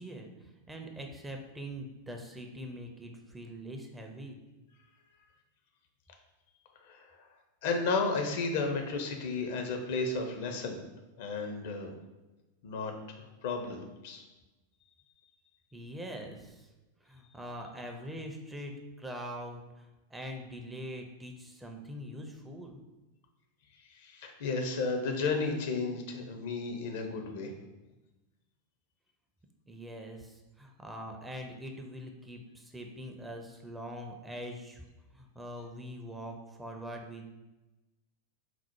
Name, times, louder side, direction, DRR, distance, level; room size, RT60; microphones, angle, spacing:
voice 1, 0.0-4.4 15.7-16.7 17.0-22.8 29.7-34.9 35.1-37.3, equal, 10° right, 3 dB, 0.5 m, -43 dB
voice 2, 7.6-10.8 11.2-11.9 12.6-14.2 23.9-27.5, left 4 dB, 50° left, 4 dB, 0.6 m, -33 dB
4.1 x 2.0 x 4.4 m, 1.1 s
figure-of-eight pair, 90°, 0 cm